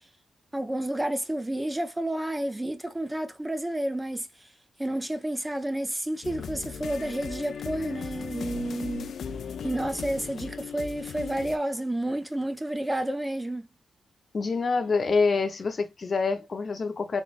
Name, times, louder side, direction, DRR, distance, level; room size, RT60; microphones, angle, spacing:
voice 1, 0.5-4.5 4.8-9.1 9.6-13.7, right 1 dB, 10° right, 0.5 m, -30 dB
sound 1, 6.2-11.6, left 6 dB, 70° left, 0.4 m, -37 dB
voice 2, 14.3-17.2, left 4 dB, 45° left, 0.8 m, -26 dB
3.8 x 3.2 x 2.4 m
cardioid pair, 70°, 0 cm